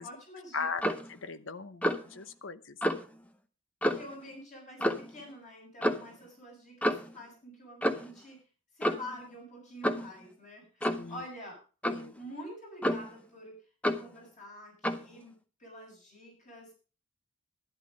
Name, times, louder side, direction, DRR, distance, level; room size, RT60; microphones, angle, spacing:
voice 1, 0.0-0.9 3.8-8.4 8.8-11.6 12.2-13.6 13.9-16.7, equal, 35° left, -1 dB, 7.0 m, -47 dB
Clock, 0.8-1.1 1.8-2.1 2.8-3.0 3.8-4.1 4.8-5.1 5.8-6.1 6.8-7.1 7.8-8.2 8.8-9.1 9.8-10.1 10.8-11.1 11.8-12.1 12.8-13.2 13.8-14.1 14.8-15.1, equal, 5° left, 0.7 m, -30 dB
voice 2, 1.1-2.8 11.0-11.2 11.9-12.1, left 5 dB, 60° left, 14 dB, 0.9 m, -38 dB
12.0 x 11.0 x 5.2 m, 0.36 s
head